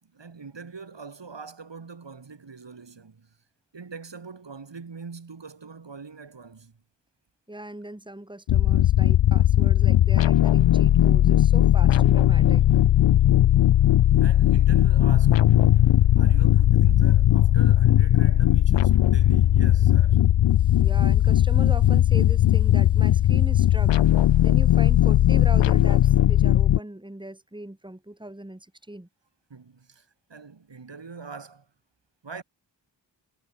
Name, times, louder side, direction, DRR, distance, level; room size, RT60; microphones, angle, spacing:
voice 1, 0.0-3.3 3.7-6.8 14.2-15.4 16.2-20.3 29.5-31.7 32.2-32.4, right 5 dB, 75° right, 5.0 m, -43 dB
voice 2, 7.5-12.7 20.6-23.9 24.4-29.1, right 1 dB, 10° right, 3.6 m, -39 dB
sound 1, 8.5-26.8, left 12 dB, 80° left, 0.5 m, -18 dB
wide cardioid pair, 65°, 43 cm